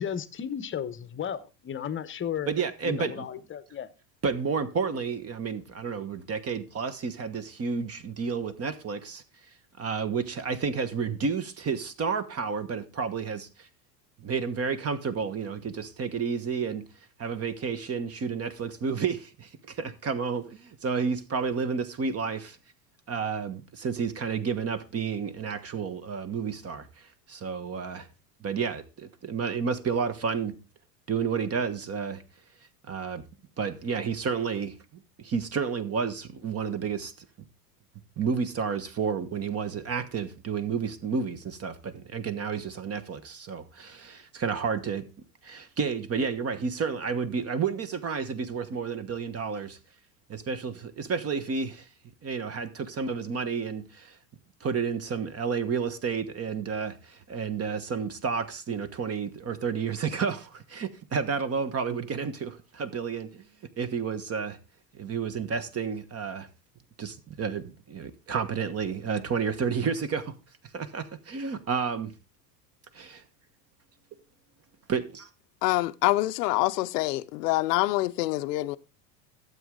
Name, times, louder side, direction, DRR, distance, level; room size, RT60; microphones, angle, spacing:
voice 1, 0.0-2.5 2.8-3.9, left 8 dB, 25° left, 0.9 m, -34 dB
voice 2, 2.5-3.3 4.2-9.2 9.8-13.7 14.2-16.8 17.2-22.6 23.1-28.1 28.4-30.6 31.1-32.2 32.8-33.2 33.6-34.7 35.2-37.1 38.2-45.0 45.4-49.8 50.3-51.9 52.2-54.2 54.6-63.5 63.8-64.6 64.9-66.5 67.0-70.3 70.7-72.1 72.9-73.2 74.9-75.3, right 5 dB, 30° right, 1.3 m, -31 dB
voice 3, 75.6-78.8, left 18 dB, 75° left, 0.7 m, -26 dB
12.5 x 7.9 x 3.7 m
hypercardioid pair, 95°, 49 cm